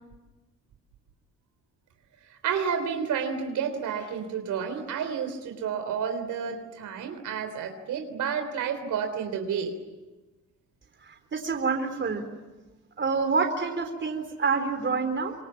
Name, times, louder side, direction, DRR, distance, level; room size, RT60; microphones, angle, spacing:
voice 1, 2.4-9.7, right 7 dB, 80° right, 6 dB, 3.5 m, -30 dB
voice 2, 11.0-12.3 13.0-15.3, right 4 dB, 40° right, 7 dB, 3.9 m, -27 dB
26.0 x 23.0 x 8.7 m, 1.2 s
cardioid pair, 90°, 30 cm